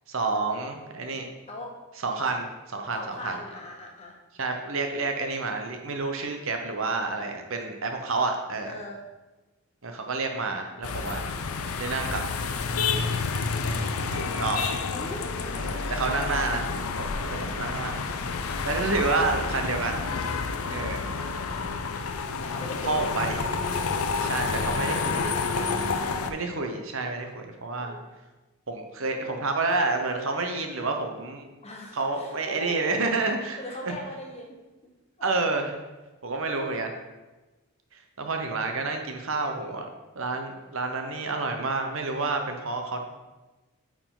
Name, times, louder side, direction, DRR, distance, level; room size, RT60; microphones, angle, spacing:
voice 1, 0.1-1.3 2.0-3.3 4.4-8.7 9.8-11.2 11.8-12.2 13.6-14.6 15.5-16.6 17.0-18.1 18.6-20.0 20.7-21.0 22.9-23.4 24.2-25.4 26.3-28.0 28.7-31.5 31.9-33.6 33.8-33.9 35.2-35.8 36.2-36.9 38.2-39.9 40.1-43.0, right 3 dB, 65° right, 4 dB, 0.9 m, -29 dB
voice 2, 2.9-4.1 8.6-9.0 14.9-15.7 16.0-16.8 22.4-23.4 27.8-28.0 31.6-32.9 33.6-34.5 35.2-35.3, left 1 dB, 30° left, 0 dB, 1.1 m, -39 dB
sound 1, 10.8-26.3, left 4 dB, 80° left, 0.6 m, -29 dB
8.7 x 4.8 x 3.9 m, 1.1 s
head